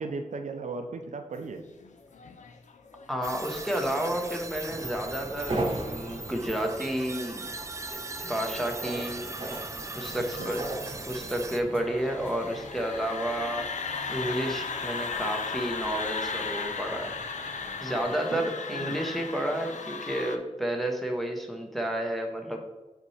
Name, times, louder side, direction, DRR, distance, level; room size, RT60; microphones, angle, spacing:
voice 1, 0.0-1.6 10.4-10.6 18.3-18.4 18.7-19.0, right 4 dB, 80° right, 6 dB, 0.5 m, -36 dB
sound 1, 1.5-20.4, left 4 dB, 75° left, 0.5 m, -38 dB
voice 2, 3.1-7.5 8.3-9.3 9.9-10.6 11.0-13.7 14.1-17.1 17.8-22.6, right 1 dB, ahead, 1 dB, 0.9 m, -31 dB
sound 2, 3.2-11.6, right 3 dB, 25° right, 0.5 m, -40 dB
sound 3, 4.7-18.1, right 2 dB, 45° right, 1.0 m, -40 dB
8.2 x 4.2 x 3.2 m, 1.1 s
wide cardioid pair, 90°, 12 cm